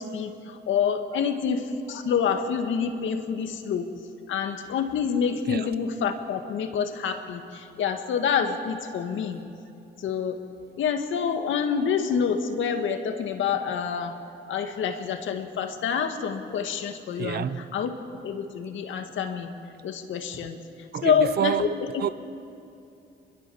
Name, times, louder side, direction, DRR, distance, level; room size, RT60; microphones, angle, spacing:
voice 1, 0.0-3.9 4.3-9.5 10.0-10.4 10.8-14.2 14.5-17.9 18.2-19.5 19.8-20.6 21.0-22.0, left 7 dB, 75° left, 1.9 m, -27 dB
voice 2, 17.2-17.7 20.9-21.7 22.0-22.1, right 9 dB, 55° right, 0.8 m, -28 dB
24.5 x 22.0 x 7.1 m
cardioid pair, 90°, 20 cm